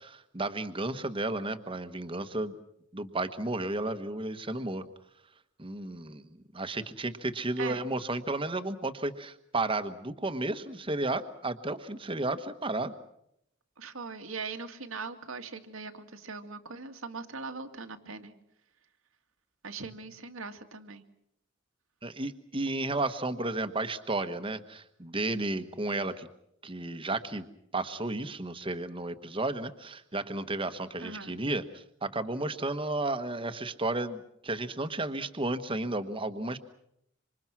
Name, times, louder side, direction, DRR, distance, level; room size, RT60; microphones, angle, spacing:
voice 1, 0.0-2.6 2.9-4.8 5.6-12.9 22.0-26.3 26.6-27.4 27.7-36.6, right 2 dB, 25° right, 10 dB, 1.3 m, -33 dB
voice 2, 13.8-18.3 19.6-21.0 31.0-31.3, right 4 dB, 85° right, 6 dB, 2.2 m, -40 dB
27.0 x 26.0 x 6.1 m, 0.76 s
head